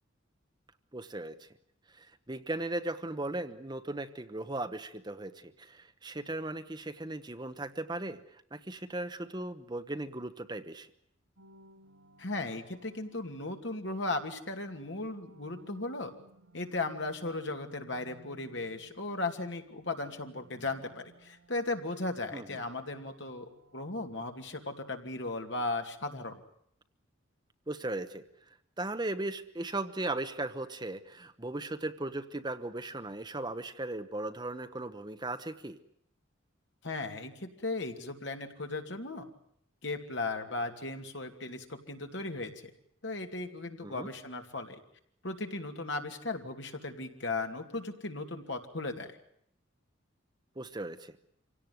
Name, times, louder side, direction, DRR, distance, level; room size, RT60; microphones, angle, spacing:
voice 1, 0.9-1.5 1.9-8.2 8.5-10.9 22.3-22.6 27.7-28.2 28.8-35.8 43.8-44.1 50.6-51.1, right 2 dB, 20° right, 9 dB, 1.0 m, -37 dB
sound 1, 11.4-13.8 14.4-19.3 19.5-24.5, right 1 dB, 90° right, 5.0 m, -60 dB
voice 2, 12.2-16.1 16.5-26.4 36.8-39.3 39.8-42.7 43.0-44.8 45.2-49.1, left 2 dB, 60° left, 5 dB, 2.5 m, -36 dB
26.0 x 17.5 x 9.4 m, 0.71 s
head